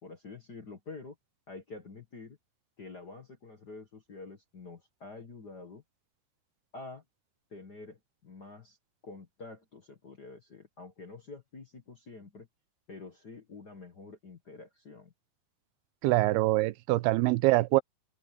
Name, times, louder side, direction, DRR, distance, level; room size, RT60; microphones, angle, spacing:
voice 1, 0.0-1.1 1.5-2.4 2.8-5.8 6.7-7.0 7.5-8.8 9.0-12.5 12.9-15.1, left 3 dB, 45° left, 1.3 m, -47 dB
voice 2, 16.0-17.8, right 19 dB, 85° right, 2.6 m, -24 dB
open air
omnidirectional pair, 4.5 m